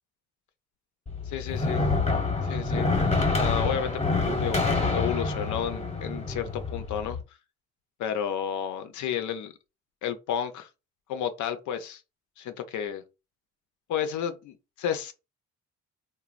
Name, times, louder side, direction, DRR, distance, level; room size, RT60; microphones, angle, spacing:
sound 1, 1.1-7.2, left 3 dB, 20° left, 1.0 m, -27 dB
voice 1, 1.3-1.8 2.4-2.9 3.3-7.2 8.0-9.5 10.0-10.7 11.1-12.0 12.4-13.0 13.9-15.1, left 9 dB, 75° left, 0.5 m, -32 dB
3.1 x 2.2 x 2.4 m
cardioid pair, 90°, 30 cm